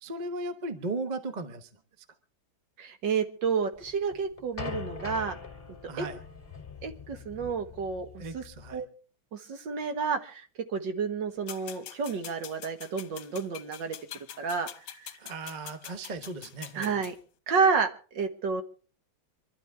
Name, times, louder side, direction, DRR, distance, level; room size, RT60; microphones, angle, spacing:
voice 1, 0.0-1.7 5.9-6.2 8.2-8.8 15.2-17.0, right 2 dB, 30° right, 10 dB, 0.9 m, -36 dB
voice 2, 2.8-5.4 6.0-6.1 6.8-8.1 8.3-8.4 8.7-8.9 9.3-10.5 10.7-14.0 14.4-14.7 15.0-15.1 16.8-17.2 17.5-17.9 18.1-18.6, right 5 dB, 65° right, 8 dB, 1.9 m, -30 dB
sound 1, 3.8-8.8, left 5 dB, 25° left, 2.6 m, -42 dB
sound 2, 11.5-17.1, left 11 dB, 75° left, 1.7 m, -44 dB
25.5 x 12.0 x 3.5 m, 0.37 s
omnidirectional pair, 2.2 m